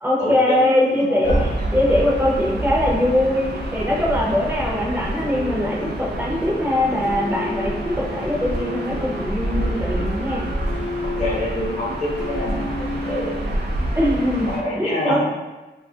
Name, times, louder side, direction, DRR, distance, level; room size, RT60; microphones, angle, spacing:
voice 1, 0.0-10.5 13.9-15.2, left 1 dB, 10° right, -4 dB, 0.5 m, -22 dB
sound 1, 0.6-4.6 5.1-13.5, left 2 dB, 65° left, 0.6 m, -35 dB
voice 2, 1.1-1.4 11.0-12.7 13.0-13.5 14.5-15.2, left 1 dB, 40° left, -6 dB, 0.8 m, -26 dB
Gull seagull / Ocean, 1.2-14.6, right 1 dB, 55° right, 0.5 m, -27 dB
2.7 x 2.3 x 2.7 m, 1.1 s
wide cardioid pair, 150°, 19 cm